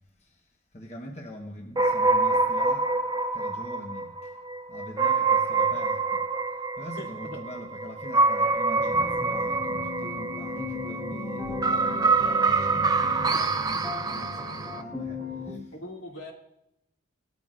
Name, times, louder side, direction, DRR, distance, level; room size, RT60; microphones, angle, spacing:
voice 1, 0.7-2.9 3.3-4.1 4.7-6.2 6.8-15.2 15.5-15.6, equal, 30° left, 1.2 m, -42 dB
sound 1, 1.8-14.8, right 3 dB, 20° right, 0.4 m, -26 dB
voice 2, 6.8-7.4 15.7-16.3, left 1 dB, 75° left, 2.7 m, -41 dB
sound 2, 8.8-15.6, left 4 dB, 5° left, 1.8 m, -37 dB
sound 3, 8.9-10.4 11.4-13.8, left 1 dB, 55° left, 3.2 m, -50 dB
19.0 x 13.0 x 2.6 m
head